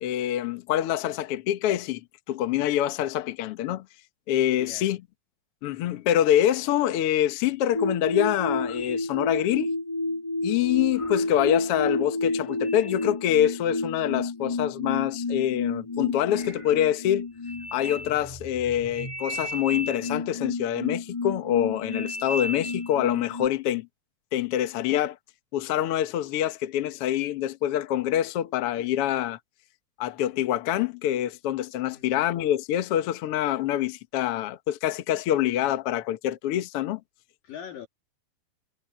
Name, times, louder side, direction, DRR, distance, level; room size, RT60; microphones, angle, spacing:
voice 1, 0.0-2.0 2.3-3.8 4.3-5.0 5.6-9.7 10.4-17.3 17.7-23.9 24.3-25.2 25.5-29.4 30.0-37.0, left 11 dB, 90° left, 1.2 m, -25 dB
voice 2, 4.6-4.9 31.9-32.3 37.4-37.9, left 9 dB, 65° left, 3.7 m, -41 dB
sound 1, 7.7-23.5, left 2 dB, 10° left, 2.8 m, -31 dB
omnidirectional pair, 4.3 m